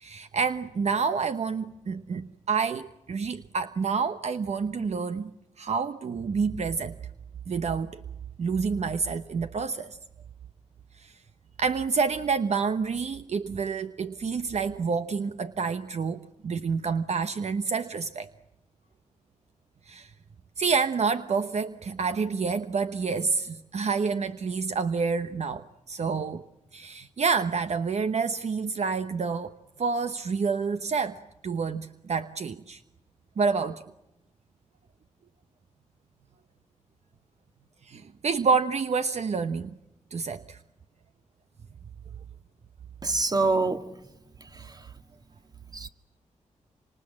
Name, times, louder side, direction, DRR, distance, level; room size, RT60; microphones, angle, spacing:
voice 1, 0.0-5.3 5.6-6.9 7.5-8.0 8.4-10.0 11.0-11.1 11.6-18.3 19.9-20.1 20.6-26.4 26.7-29.5 29.8-32.8 33.4-33.8 37.8-39.8 40.1-40.6, right 5 dB, 60° right, 10 dB, 1.0 m, -28 dB
voice 2, 43.0-43.8 44.4-44.9 45.7-45.9, right 3 dB, 30° right, 8 dB, 2.0 m, -26 dB
27.5 x 26.0 x 7.5 m, 0.92 s
cardioid pair, 80°, 13 cm